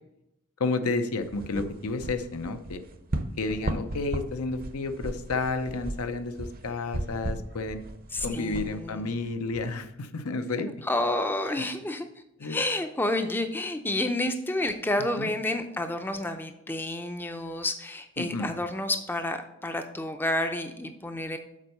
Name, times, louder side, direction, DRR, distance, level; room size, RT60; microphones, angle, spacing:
voice 1, 0.6-2.8 3.4-7.8 8.2-10.7 12.4-12.6 15.2-15.3 18.2-18.5, left 3 dB, 85° left, 8 dB, 0.7 m, -31 dB
sound 1, 1.2-9.7, right 1 dB, 40° right, 0.6 m, -36 dB
voice 2, 8.1-9.1 10.6-12.1 12.4-21.4, left 1 dB, 10° left, 7 dB, 0.4 m, -30 dB
7.4 x 4.4 x 6.4 m, 0.87 s
head